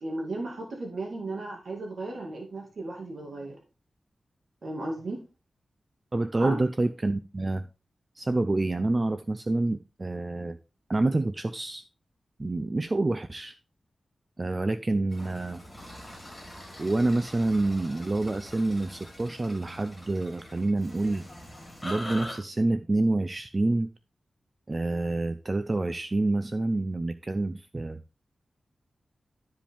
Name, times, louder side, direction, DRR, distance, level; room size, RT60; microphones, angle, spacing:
voice 1, 0.0-3.6 4.6-5.2 6.3-6.6, right 2 dB, 65° right, 1.9 m, -35 dB
voice 2, 6.1-7.6 8.2-10.6 10.9-11.8 12.4-13.6 14.4-15.6 16.8-21.2 21.8-23.9 24.7-28.0, right 2 dB, 30° right, 0.4 m, -27 dB
sound 1, 15.1-22.4, left 1 dB, 10° left, 3.1 m, -43 dB
12.0 x 5.1 x 3.4 m
wide cardioid pair, 125°, 0 cm